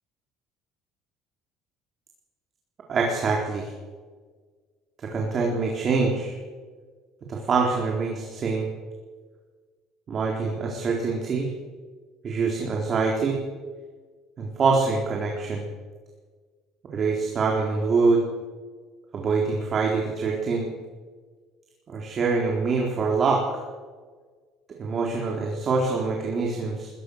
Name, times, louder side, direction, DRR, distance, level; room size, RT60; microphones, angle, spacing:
voice 1, 2.9-3.7 5.0-6.4 7.3-8.7 10.1-11.5 12.2-13.4 14.4-15.7 16.9-18.2 19.1-20.7 21.9-23.4 24.8-27.0, right 4 dB, 35° right, -1 dB, 3.9 m, -25 dB
22.0 x 19.5 x 6.6 m, 1.5 s
cardioid pair, 135°, 0 cm